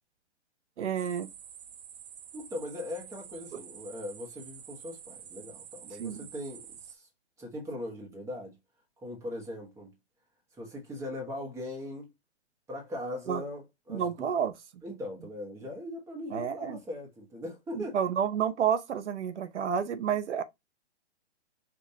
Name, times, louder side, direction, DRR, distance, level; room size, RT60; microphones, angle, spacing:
voice 1, 0.8-1.3 3.5-3.6 6.0-6.2 13.3-13.4 13.9-14.5 16.3-16.8 17.7-20.4, right 8 dB, 80° right, 0.7 m, -30 dB
sound 1, 1.0-7.0, right 8 dB, 35° right, 0.4 m, -48 dB
voice 2, 2.3-7.1 7.4-8.6 9.0-9.9 10.5-12.1 12.7-14.3 14.8-18.0, left 1 dB, 10° right, 1.0 m, -40 dB
5.2 x 2.6 x 2.7 m
hypercardioid pair, 145°, 34 cm